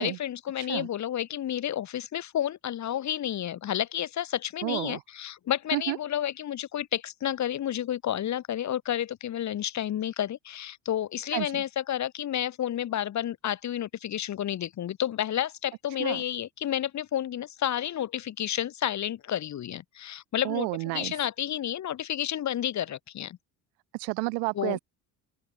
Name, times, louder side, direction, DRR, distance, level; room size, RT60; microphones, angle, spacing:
voice 1, 0.0-23.4 24.6-24.8, left 11 dB, 35° left, 0.9 m, -31 dB
voice 2, 0.6-0.9 4.6-5.0 5.7-6.0 11.3-11.6 16.0-16.2 20.4-21.2 23.9-24.8, right 34 dB, 65° right, 0.8 m, -31 dB
open air
hypercardioid pair, 60°, 47 cm